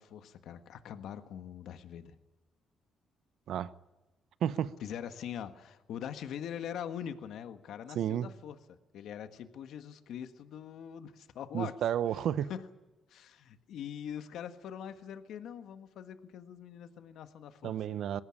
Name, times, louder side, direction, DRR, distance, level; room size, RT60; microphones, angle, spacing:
voice 1, 0.0-2.1 4.8-11.7 12.5-12.7 13.1-18.0, left 9 dB, 75° left, 1.5 m, -43 dB
voice 2, 4.4-4.7 7.9-8.3 11.5-12.5 17.6-18.2, right 10 dB, 75° right, 0.8 m, -31 dB
21.0 x 17.0 x 9.9 m
cardioid pair, 90°, 0 cm